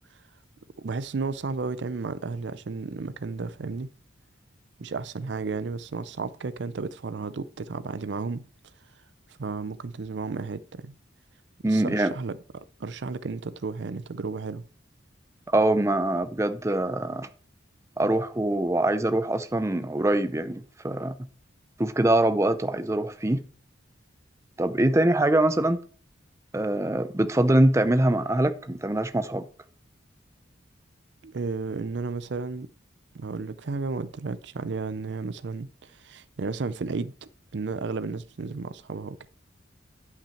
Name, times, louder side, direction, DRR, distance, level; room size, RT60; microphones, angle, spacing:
voice 1, 0.8-3.9 4.8-8.5 9.4-10.9 11.7-14.7 31.2-32.7 33.1-39.3, right 4 dB, 65° right, 0.5 m, -33 dB
voice 2, 11.6-12.1 15.5-17.3 18.0-21.1 21.8-23.4 24.6-25.8 26.5-29.5, right 1 dB, 15° right, 0.5 m, -23 dB
10.0 x 5.9 x 4.5 m
head